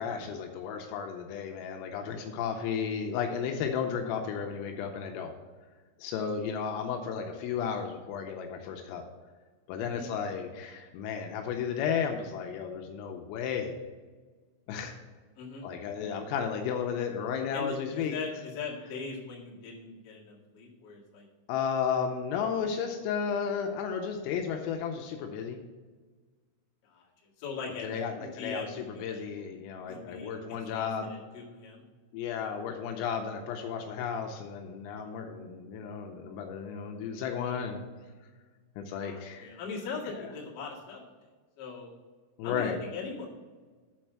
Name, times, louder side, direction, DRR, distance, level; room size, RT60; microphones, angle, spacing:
voice 1, 0.0-5.3 6.0-9.0 9.7-13.8 14.7-15.0 15.6-18.1 21.5-25.6 27.8-31.1 32.1-37.8 38.8-39.6 40.0-40.3 42.4-42.8, left 7 dB, 85° left, 3 dB, 3.3 m, -33 dB
voice 2, 15.4-15.7 17.5-21.3 26.8-27.1 27.4-28.0 28.4-29.2 29.9-31.8 39.0-41.3 41.6-41.9 42.4-43.3, left 4 dB, 55° left, -5 dB, 2.8 m, -40 dB
8.6 x 4.5 x 7.4 m, 1.4 s
omnidirectional pair, 5.9 m